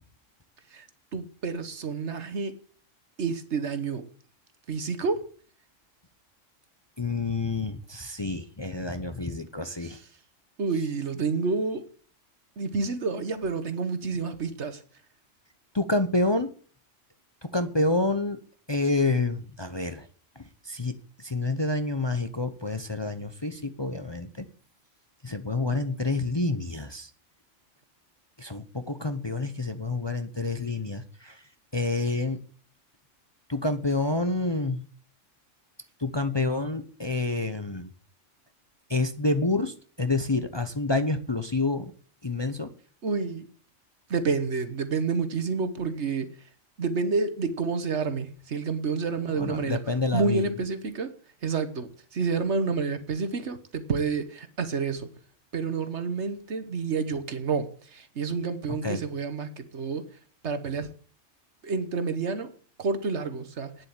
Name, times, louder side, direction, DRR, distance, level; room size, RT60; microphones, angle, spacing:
voice 1, 1.1-2.5 3.2-4.1 4.7-5.2 9.8-9.9 10.6-11.9 12.6-14.8 43.0-43.4 44.1-46.3 46.8-49.8 50.1-51.1 51.4-55.1 55.5-60.0 60.4-60.9 61.6-62.5 62.8-63.8, right 4 dB, 60° right, 1.5 m, -29 dB
voice 2, 7.0-10.0 15.7-16.5 17.4-18.4 18.7-20.1 20.6-24.5 25.2-27.1 28.4-31.4 31.7-32.4 33.5-34.8 36.0-37.9 38.9-41.9 42.2-42.7 49.1-50.5 58.7-59.0, left 2 dB, 25° left, 0.8 m, -28 dB
9.7 x 7.7 x 8.7 m
omnidirectional pair, 1.3 m